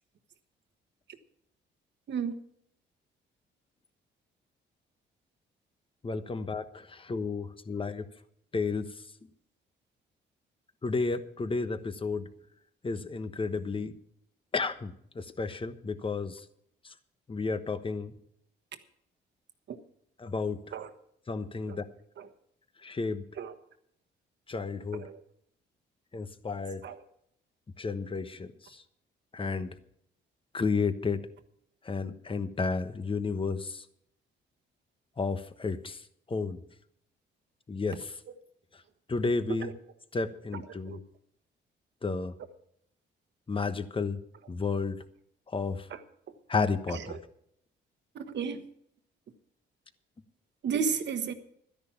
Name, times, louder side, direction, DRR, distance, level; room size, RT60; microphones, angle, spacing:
voice 1, 6.0-8.0 8.5-8.9 10.8-12.3 12.8-13.9 14.5-16.4 17.3-18.1 20.2-20.6 21.3-21.8 22.8-23.2 24.5-25.0 26.1-26.8 27.8-28.8 29.3-29.7 30.5-31.2 31.8-33.8 35.2-36.0 36.3-36.6 37.7-38.1 39.1-39.7 40.1-41.0 42.0-42.3 43.5-44.2 44.5-45.0 45.5-45.9 46.5-47.2, left 4 dB, 25° left, 1.1 m, -32 dB
voice 2, 40.5-41.0 45.9-46.0 46.9-47.2 48.1-48.7 50.6-51.3, right 6 dB, 60° right, 1.4 m, -34 dB
12.5 x 10.5 x 5.8 m
cardioid pair, 90°, 20 cm